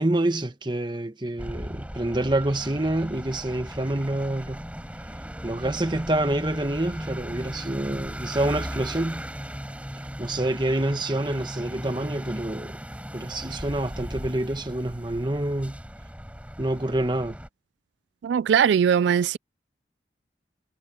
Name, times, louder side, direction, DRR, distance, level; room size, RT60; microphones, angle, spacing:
voice 1, 0.0-4.6 5.4-9.3 10.2-12.8 13.1-15.8 16.6-17.4, right 1 dB, 25° right, 1.2 m, -27 dB
sound 1, 1.4-17.5, equal, 5° right, 5.5 m, -37 dB
voice 2, 18.2-19.4, right 8 dB, 80° right, 0.3 m, -20 dB
head